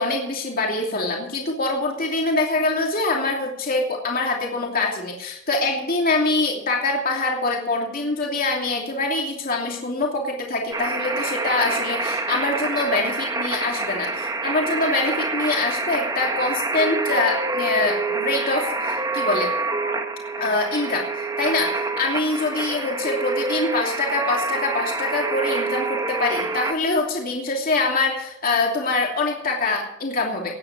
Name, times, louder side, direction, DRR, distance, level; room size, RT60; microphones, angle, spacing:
voice 1, 0.0-19.5 20.4-21.1 21.4-30.6, left 3 dB, 45° left, 0 dB, 2.9 m, -24 dB
sound 1, 10.7-26.7, right 3 dB, 20° right, 1.3 m, -26 dB
18.5 x 9.9 x 6.0 m, 0.75 s
head